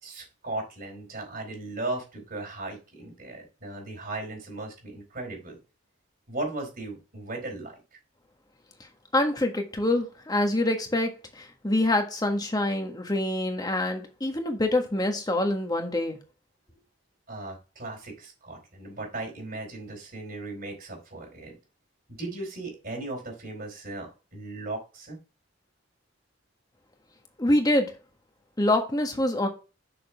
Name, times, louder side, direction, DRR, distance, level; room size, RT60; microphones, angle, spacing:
voice 1, 0.0-5.6 6.3-8.0 17.3-21.6 22.2-25.2, right 2 dB, 50° right, 4.6 m, -37 dB
voice 2, 9.1-16.2 27.4-28.0 28.6-29.5, left 1 dB, 20° left, 1.4 m, -25 dB
6.9 x 6.4 x 3.4 m
head